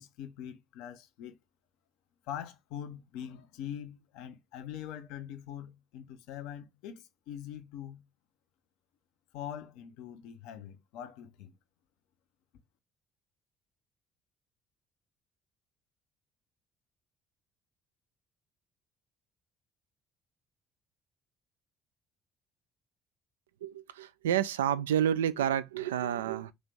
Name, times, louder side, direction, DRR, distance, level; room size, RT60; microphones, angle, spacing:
voice 1, 0.0-1.3 2.3-8.0 9.3-11.5, left 10 dB, 65° left, 0.6 m, -43 dB
voice 2, 23.6-26.5, right 10 dB, 80° right, 0.3 m, -29 dB
3.1 x 2.8 x 3.5 m
figure-of-eight pair, 50°, 0 cm